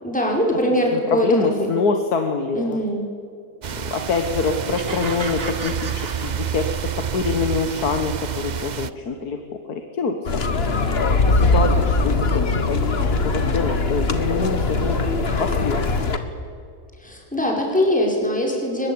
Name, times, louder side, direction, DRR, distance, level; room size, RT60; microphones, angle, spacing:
voice 1, 0.0-1.7 2.5-3.0 17.0-18.9, left 1 dB, 5° left, -1 dB, 5.0 m, -22 dB
voice 2, 0.9-2.8 3.8-9.4 9.7-15.0 15.4-15.8, left 4 dB, 70° left, 6 dB, 1.9 m, -25 dB
sound 1, 3.6-8.9, right 8 dB, 60° right, 0.4 m, -28 dB
sound 2, 4.7-7.1, right 4 dB, 40° right, 1.6 m, -35 dB
sound 3, 10.2-16.2, left 3 dB, 40° left, 1.8 m, -21 dB
23.5 x 21.0 x 8.7 m, 2.5 s
omnidirectional pair, 1.7 m